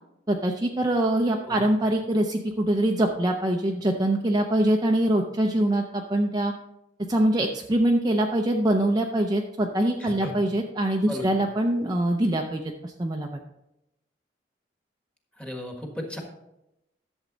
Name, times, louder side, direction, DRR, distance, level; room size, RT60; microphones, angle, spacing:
voice 1, 0.3-6.5 7.1-13.3, right 1 dB, 20° right, 1 dB, 0.5 m, -24 dB
voice 2, 10.0-10.3 11.1-11.3 15.4-16.2, left 1 dB, 5° left, 1 dB, 1.4 m, -35 dB
11.5 x 7.3 x 3.9 m, 0.89 s
head